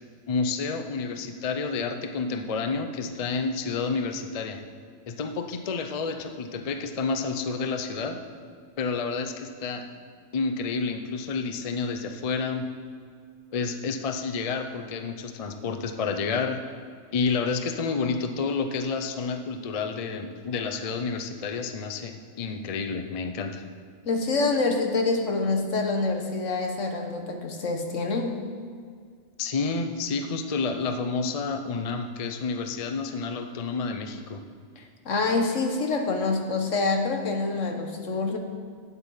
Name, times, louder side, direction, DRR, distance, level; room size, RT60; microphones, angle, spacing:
voice 1, 0.3-4.6 5.1-8.2 8.8-9.8 10.3-12.7 13.5-16.6 17.1-23.6 29.4-34.4, left 4 dB, 40° left, 7 dB, 0.6 m, -29 dB
voice 2, 24.0-28.4 34.8-38.4, left 3 dB, 80° left, 3 dB, 1.6 m, -26 dB
9.3 x 8.1 x 5.6 m, 2.1 s
omnidirectional pair, 1.3 m